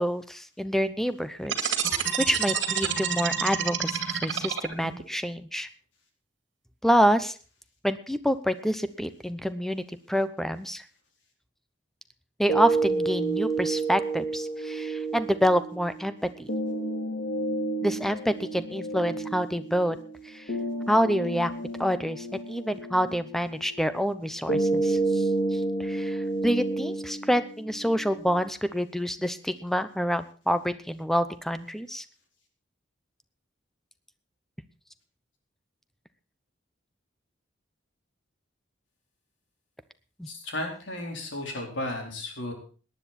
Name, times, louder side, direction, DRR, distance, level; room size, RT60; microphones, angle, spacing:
voice 1, 0.0-1.7 2.3-5.7 6.8-7.3 7.8-10.8 12.4-16.5 17.8-20.0 20.3-20.4 20.9-21.5 21.8-25.3 25.8-32.0 40.2-40.3, equal, ahead, 12 dB, 0.8 m, -27 dB
sound 1, 1.5-5.0, right 8 dB, 70° right, 2.1 m, -28 dB
sound 2, 12.5-28.5, right 2 dB, 50° left, 3.0 m, -30 dB
voice 2, 40.3-42.5, left 1 dB, 75° left, 2 dB, 4.2 m, -34 dB
18.0 x 10.5 x 4.2 m, 0.37 s
head